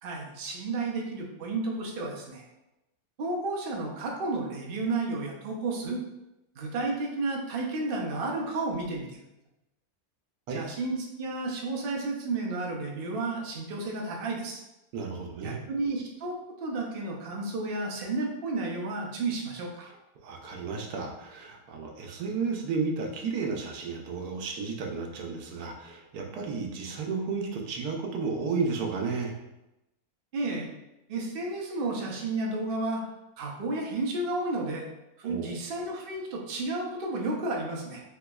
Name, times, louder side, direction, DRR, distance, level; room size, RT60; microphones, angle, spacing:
voice 1, 0.0-2.4 3.2-6.0 6.6-9.2 10.5-14.6 15.4-16.3 16.6-19.9 30.3-30.7 31.1-33.0 33.4-34.9 35.2-38.0, right 2 dB, 65° right, -1 dB, 0.5 m, -32 dB
voice 2, 14.9-15.6 20.2-29.3 35.2-35.6, right 4 dB, 85° right, 1 dB, 1.1 m, -33 dB
3.4 x 2.9 x 2.3 m, 0.95 s
omnidirectional pair, 1.6 m